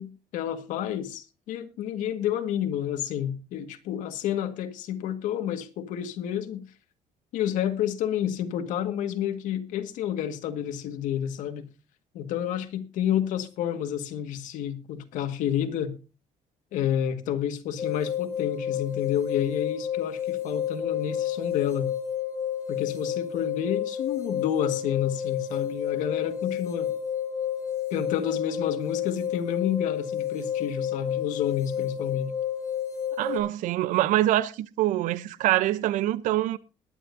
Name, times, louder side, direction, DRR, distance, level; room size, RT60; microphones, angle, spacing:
voice 1, 0.0-6.7 7.3-11.7 12.1-15.9 16.7-21.9 22.7-26.9 27.9-32.3, left 10 dB, 85° left, 1.8 m, -30 dB
sound 1, 17.8-33.4, left 9 dB, 25° left, 5.1 m, -30 dB
voice 2, 33.2-36.6, right 14 dB, 85° right, 0.7 m, -25 dB
21.0 x 10.5 x 2.7 m
cardioid pair, 160°, 13 cm